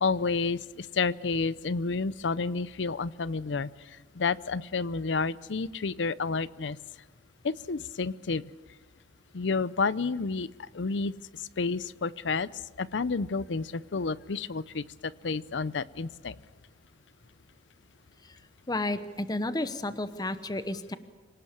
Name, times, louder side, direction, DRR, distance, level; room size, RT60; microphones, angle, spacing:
voice 1, 0.0-3.7 4.2-6.8 7.4-8.4 9.3-10.5 10.7-11.1 11.6-12.5 12.8-16.3, left 4 dB, 80° left, 18 dB, 0.6 m, -30 dB
voice 2, 18.7-21.0, left 2 dB, 20° left, 12 dB, 0.9 m, -31 dB
26.5 x 18.5 x 7.3 m, 1.3 s
head